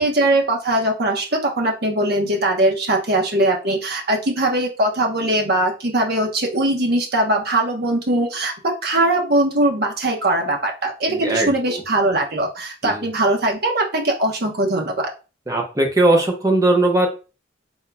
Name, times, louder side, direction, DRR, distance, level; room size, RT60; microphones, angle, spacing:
voice 1, 0.0-15.1, right 1 dB, 55° right, 1 dB, 1.0 m, -20 dB
voice 2, 11.1-11.8 12.8-13.0 15.5-17.1, right 2 dB, 20° right, 2 dB, 0.9 m, -19 dB
4.1 x 3.6 x 2.3 m, 0.32 s
head